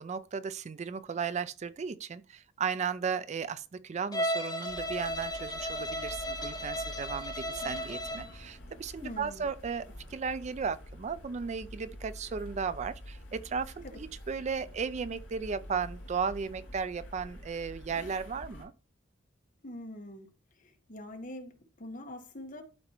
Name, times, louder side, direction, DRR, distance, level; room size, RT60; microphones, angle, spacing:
voice 1, 0.0-9.9 10.1-18.7, right 6 dB, 35° right, 0.4 m, -35 dB
Bowed string instrument, 4.1-8.3, equal, 20° left, 1.3 m, -35 dB
sound 1, 4.7-18.7, equal, 80° left, 3.4 m, -47 dB
voice 2, 9.0-9.5 13.8-14.0 19.6-20.3 20.6-22.6, left 1 dB, 45° left, 1.3 m, -44 dB
12.0 x 4.4 x 2.9 m
head